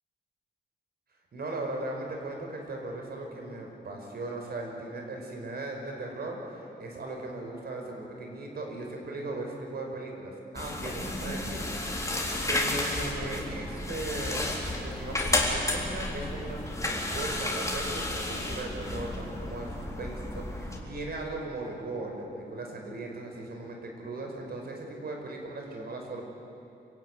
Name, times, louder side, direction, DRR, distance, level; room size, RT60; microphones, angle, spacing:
voice 1, 1.3-12.2 12.5-26.2, right 2 dB, 65° right, 1 dB, 5.3 m, -38 dB
sound 1, 10.6-20.8, left 2 dB, 15° left, 3.9 m, -32 dB
27.0 x 16.5 x 9.7 m, 2.9 s
cardioid pair, 95°, 18 cm